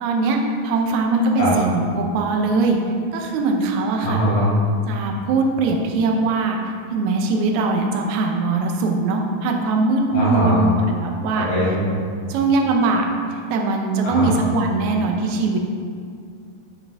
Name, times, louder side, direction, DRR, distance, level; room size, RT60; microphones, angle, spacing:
voice 1, 0.0-0.4 0.6-2.8 3.1-4.2 4.9-6.6 6.9-11.5 12.3-15.6, right 3 dB, 75° right, 2 dB, 1.8 m, -21 dB
voice 2, 4.0-4.5 10.1-10.6 11.5-11.9 14.0-14.3, equal, 55° left, -8 dB, 1.6 m, -20 dB
10.5 x 4.6 x 3.4 m, 2.3 s
omnidirectional pair, 4.0 m